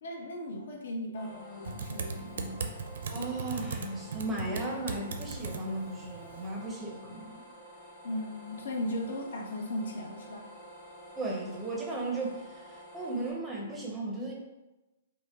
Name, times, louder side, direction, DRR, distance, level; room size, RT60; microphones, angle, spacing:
voice 1, 0.0-2.7 8.0-10.5, left 1 dB, 65° left, 0 dB, 1.0 m, -37 dB
sound 1, 1.1-13.3, equal, 20° left, 1.0 m, -50 dB
Typing, 1.7-6.7, right 5 dB, 65° right, 0.5 m, -39 dB
voice 2, 3.1-7.4 11.2-14.3, right 2 dB, 5° right, -2 dB, 0.6 m, -36 dB
5.2 x 2.1 x 3.6 m, 1.0 s
hypercardioid pair, 170°, 0 cm